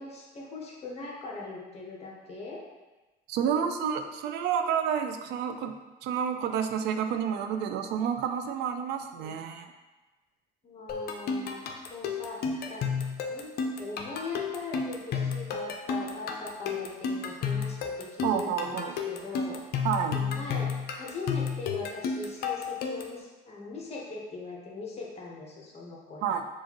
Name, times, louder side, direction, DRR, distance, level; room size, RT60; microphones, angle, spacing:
voice 1, 0.0-2.6 3.5-3.9 4.2-4.4 9.1-9.3 10.6-11.6 11.9-12.9 13.3-19.6 20.1-26.3, left 3 dB, 40° left, -3 dB, 1.0 m, -40 dB
voice 2, 3.3-5.7 6.0-9.7 18.2-19.0 19.8-20.2 26.2-26.4, right 8 dB, 85° right, 7 dB, 0.4 m, -29 dB
sound 1, 10.9-23.2, left 5 dB, 65° left, 0.5 m, -32 dB
6.4 x 2.5 x 2.9 m, 1.2 s
cardioid pair, 110°, 17 cm